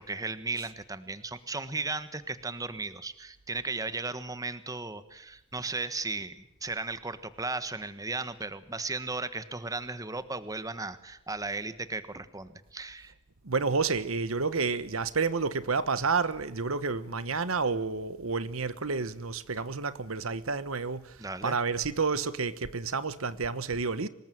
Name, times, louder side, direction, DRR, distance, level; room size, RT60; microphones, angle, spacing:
voice 1, 0.0-13.1 21.2-21.5, right 3 dB, 15° right, 1.3 m, -36 dB
voice 2, 13.4-24.1, right 4 dB, 75° right, 1.2 m, -30 dB
25.0 x 20.5 x 9.2 m
head